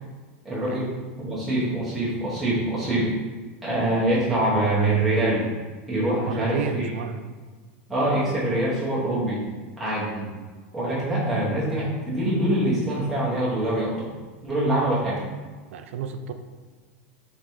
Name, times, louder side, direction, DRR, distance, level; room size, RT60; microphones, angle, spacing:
voice 1, 0.4-3.1 3.6-5.5 5.9-6.8 7.9-9.4 9.8-10.3 10.7-14.1 14.4-15.2, right 1 dB, ahead, -9 dB, 1.0 m, -24 dB
voice 2, 6.2-7.3 15.7-16.3, right 6 dB, 90° right, 8 dB, 0.4 m, -31 dB
3.8 x 3.4 x 3.1 m, 1.4 s
supercardioid pair, 165°, 7 cm